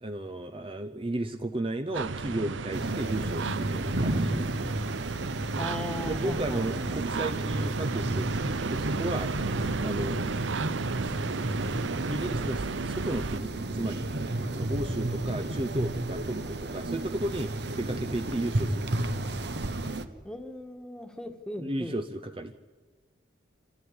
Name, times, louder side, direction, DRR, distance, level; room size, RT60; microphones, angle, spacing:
voice 1, 0.0-4.5 6.1-10.2 12.1-14.1 14.5-19.1 21.6-22.5, right 1 dB, 30° right, 7 dB, 0.7 m, -34 dB
sound 1, 1.9-13.4, right 4 dB, 85° right, 0.7 m, -33 dB
sound 2, 2.7-20.1, right 1 dB, 60° right, 1.1 m, -32 dB
voice 2, 5.6-6.8 9.8-10.0 14.7-14.8 20.2-22.0, left 1 dB, 5° left, 6 dB, 1.6 m, -38 dB
25.5 x 14.5 x 9.7 m, 1.5 s
head